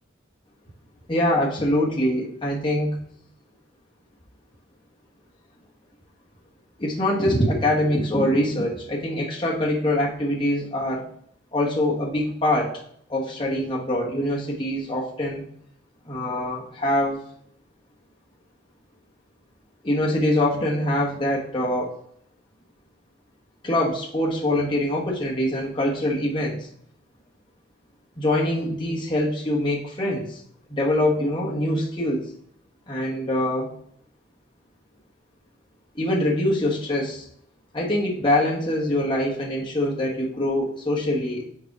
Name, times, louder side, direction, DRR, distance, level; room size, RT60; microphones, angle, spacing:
voice 1, 1.1-3.0 6.8-11.0 11.5-12.7 13.1-15.4 16.0-17.2 19.8-21.9 23.6-26.7 28.2-30.4 30.7-32.3 32.9-33.7 35.9-37.3 37.7-41.5, left 1 dB, 25° left, -3 dB, 1.2 m, -24 dB
4.8 x 4.5 x 4.7 m, 0.65 s
head